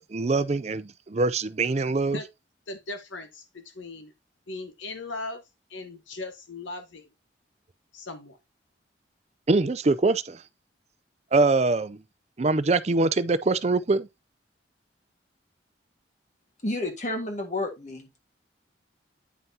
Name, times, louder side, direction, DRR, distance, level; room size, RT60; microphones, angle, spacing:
voice 1, 0.0-2.2 9.5-10.4 11.3-12.0 12.4-14.1, right 3 dB, 35° right, 0.4 m, -23 dB
voice 2, 2.7-4.1 4.5-5.4 5.7-7.1 7.9-8.4, left 2 dB, 90° left, 1.2 m, -38 dB
voice 3, 16.6-18.1, left 2 dB, 40° left, 1.7 m, -30 dB
9.3 x 5.6 x 2.8 m
head